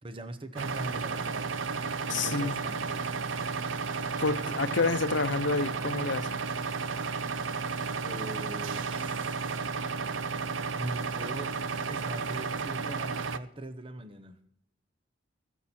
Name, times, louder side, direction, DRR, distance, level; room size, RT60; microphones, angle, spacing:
voice 1, 0.0-3.1 8.0-9.3 10.8-11.5 11.9-14.5, right 1 dB, 30° right, 0.9 m, -42 dB
sound 1, 0.6-13.4, right 5 dB, 85° right, 0.6 m, -33 dB
voice 2, 2.1-2.5 4.2-6.4, left 4 dB, 70° left, 0.7 m, -29 dB
20.0 x 7.3 x 4.3 m
head